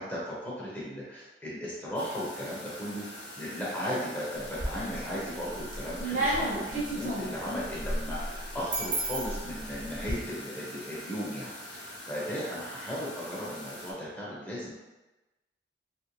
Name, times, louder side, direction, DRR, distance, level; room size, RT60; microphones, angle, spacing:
voice 1, 0.0-14.8, equal, 10° left, -7 dB, 0.6 m, -36 dB
sound 1, 1.9-13.9, left 1 dB, 80° left, 0.7 m, -44 dB
sound 2, 4.5-5.1 5.5-10.1, right 2 dB, 45° right, 0.9 m, -32 dB
3.0 x 2.7 x 2.9 m, 1.1 s
head